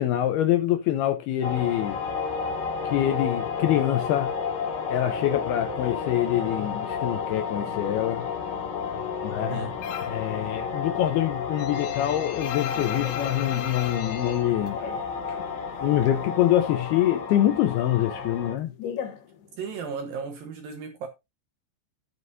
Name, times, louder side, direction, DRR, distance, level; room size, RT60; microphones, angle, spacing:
voice 1, 0.0-2.0 2.8-4.3 4.9-8.3 9.2-9.7 10.0-14.8 15.8-18.7, left 12 dB, 85° left, 2.2 m, -25 dB
sound 1, 1.4-18.5, left 5 dB, 55° left, 3.2 m, -32 dB
sound 2, 9.8-10.3 10.6-15.5 15.7-16.8 17.1-19.9, left 9 dB, 70° left, 2.7 m, -37 dB
voice 2, 19.6-21.1, right 5 dB, 70° right, 2.3 m, -35 dB
11.5 x 9.6 x 2.6 m
omnidirectional pair, 5.4 m